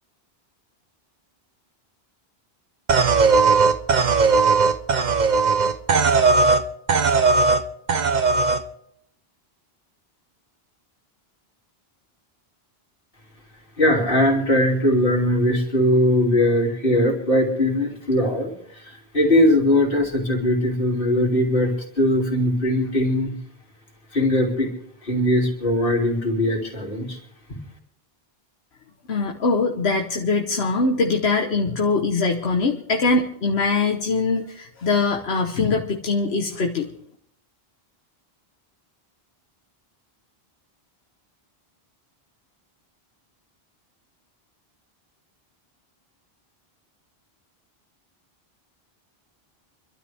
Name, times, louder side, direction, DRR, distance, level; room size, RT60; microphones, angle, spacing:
sound 1, 2.9-6.6 6.9-7.6 7.9-8.6, right 4 dB, 45° right, 1.0 m, -18 dB
voice 1, 13.8-23.3 24.1-24.7 25.0-27.2, left 1 dB, 60° left, 0 dB, 3.3 m, -20 dB
voice 2, 29.1-36.9, left 3 dB, 85° left, 2 dB, 1.4 m, -22 dB
26.0 x 12.5 x 3.5 m, 0.71 s
omnidirectional pair, 1.0 m